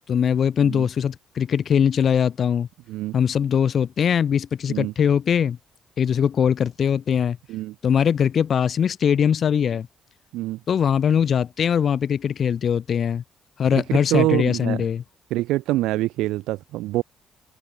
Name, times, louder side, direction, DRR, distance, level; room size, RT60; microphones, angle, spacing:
voice 1, 0.0-2.7 3.1-5.6 6.0-7.4 7.8-9.9 10.7-13.2 13.6-15.0, left 8 dB, 55° left, 7.2 m, -21 dB
voice 2, 13.7-14.8 15.3-17.0, right 17 dB, 85° right, 6.1 m, -25 dB
cardioid pair, 85°, 0 cm